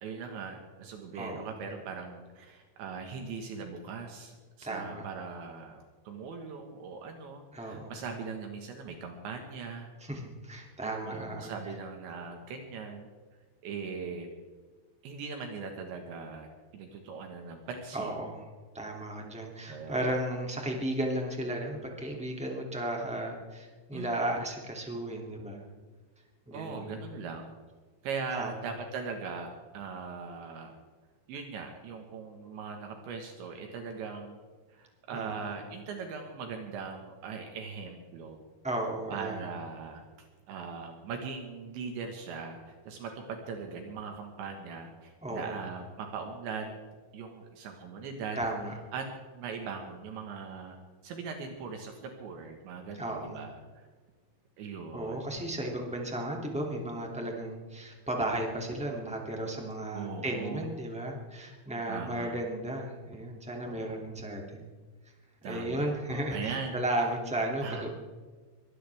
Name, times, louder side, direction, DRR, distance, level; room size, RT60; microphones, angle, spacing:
voice 1, 0.0-5.8 6.1-9.9 10.8-13.1 13.6-14.3 15.0-18.2 19.7-20.2 23.9-24.1 26.5-27.5 28.0-30.8 31.3-34.4 34.7-38.4 39.1-46.8 47.1-48.4 48.9-50.8 51.0-53.9 54.6-55.2 59.9-60.7 61.9-62.4 63.6-64.0 65.4-67.1 67.6-67.9, right 5 dB, 70° right, 3 dB, 3.7 m, -40 dB
voice 2, 1.1-1.5 4.6-5.0 7.5-7.9 10.0-11.5 17.9-18.4 18.7-25.6 26.5-26.9 28.3-28.5 35.1-35.3 38.6-39.4 45.2-45.6 48.3-48.7 52.9-53.4 54.9-64.7 65.4-67.9, right 1 dB, 5° right, 0 dB, 0.7 m, -34 dB
23.5 x 17.5 x 3.5 m, 1.4 s
omnidirectional pair, 5.5 m